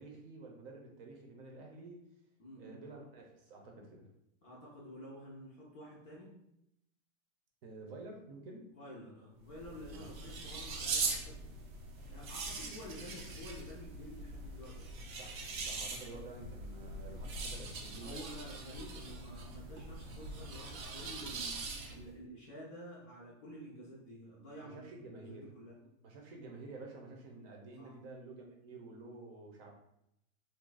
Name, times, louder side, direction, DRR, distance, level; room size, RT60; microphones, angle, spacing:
voice 1, 0.0-2.1 2.6-4.1 7.6-8.7 9.9-10.1 15.2-18.2 24.6-25.6 26.0-29.7, right 2 dB, 45° right, 1 dB, 0.8 m, -50 dB
voice 2, 2.4-2.8 4.4-6.4 8.7-11.4 12.1-14.9 16.1-16.3 18.0-25.7 27.8-27.9, equal, 20° left, -6 dB, 0.5 m, -50 dB
sound 1, 9.4-22.1, right 3 dB, 90° right, 0.8 m, -42 dB
2.6 x 2.2 x 3.8 m, 0.78 s
supercardioid pair, 150°, 40 cm